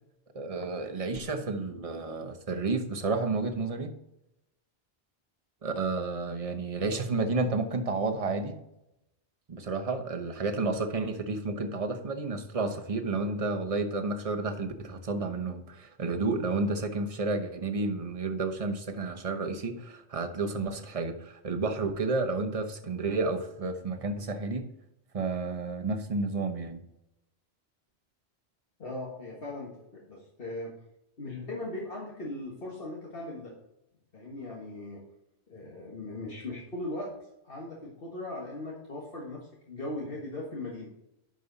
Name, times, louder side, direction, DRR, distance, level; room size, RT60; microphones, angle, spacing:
voice 1, 0.3-3.9 5.6-8.6 9.5-24.7 25.1-26.8, right 3 dB, 35° right, 6 dB, 0.9 m, -31 dB
voice 2, 28.8-30.7 31.2-33.5 34.1-35.0 35.5-37.2 37.4-40.9, left 2 dB, 60° left, -4 dB, 1.8 m, -39 dB
11.0 x 5.3 x 4.0 m, 0.85 s
omnidirectional pair, 1.1 m